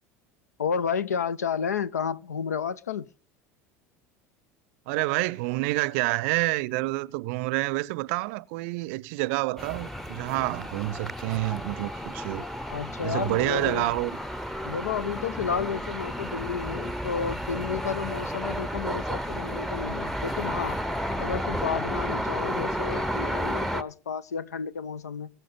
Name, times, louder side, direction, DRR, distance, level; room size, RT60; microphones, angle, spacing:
voice 1, 0.6-3.1 12.7-13.9 14.6-20.8 21.2-25.3, left 6 dB, 75° left, 0.6 m, -31 dB
voice 2, 4.9-12.5 13.0-14.2, right 22 dB, 55° right, 0.6 m, -28 dB
sound 1, 9.6-23.8, equal, ahead, 0.8 m, -32 dB
21.5 x 7.4 x 5.1 m
figure-of-eight pair, 70°, 9 cm